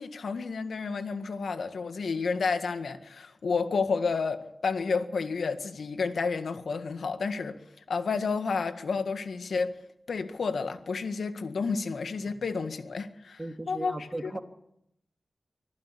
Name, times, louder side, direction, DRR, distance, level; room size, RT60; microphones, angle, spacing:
voice 1, 0.0-7.6 7.9-9.8 10.1-14.4, left 4 dB, 85° left, 1.8 m, -31 dB
voice 2, 13.4-14.4, right 1 dB, 30° right, 3.1 m, -36 dB
25.0 x 15.0 x 8.5 m
cardioid pair, 45°, 0 cm